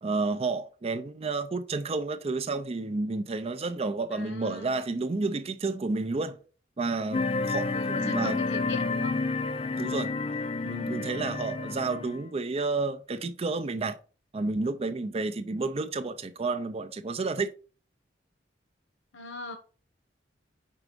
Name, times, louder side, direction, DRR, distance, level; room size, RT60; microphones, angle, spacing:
voice 1, 0.0-6.4 6.8-8.4 9.8-10.1 10.6-14.0 14.3-17.5, right 3 dB, 35° right, 0.5 m, -31 dB
voice 2, 4.1-4.8 7.7-9.2 19.1-19.6, left 4 dB, 75° left, 1.0 m, -38 dB
sound 1, 7.1-12.2, left 3 dB, 35° left, 0.4 m, -30 dB
5.0 x 4.6 x 5.1 m
head